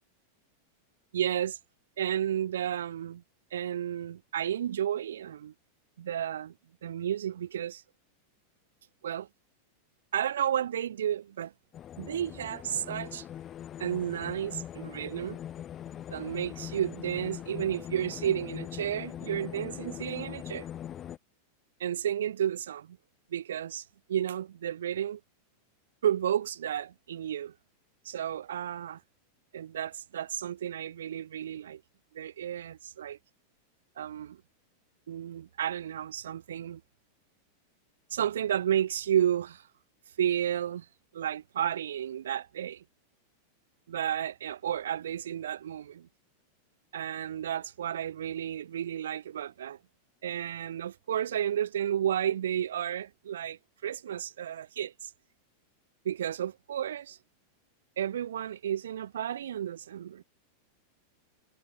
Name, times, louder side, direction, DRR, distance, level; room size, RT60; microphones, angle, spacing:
voice 1, 1.1-1.6 2.0-3.2 3.5-5.5 6.0-6.5 6.8-7.8 9.0-9.3 10.1-11.5 12.0-13.3 13.8-15.4 16.1-20.7 21.8-23.0 23.3-25.2 26.0-27.5 28.0-29.0 29.5-31.8 32.1-33.2 34.0-34.4 35.1-36.8 38.1-39.7 40.2-40.9 41.1-42.8 43.9-46.1 46.9-49.8 50.2-55.1 56.0-57.2 58.0-60.2, right 10 dB, 65° right, 0.4 m, -32 dB
sound 1, 11.7-21.2, left 10 dB, 30° left, 0.6 m, -41 dB
figure-of-eight pair, 90°, 0 cm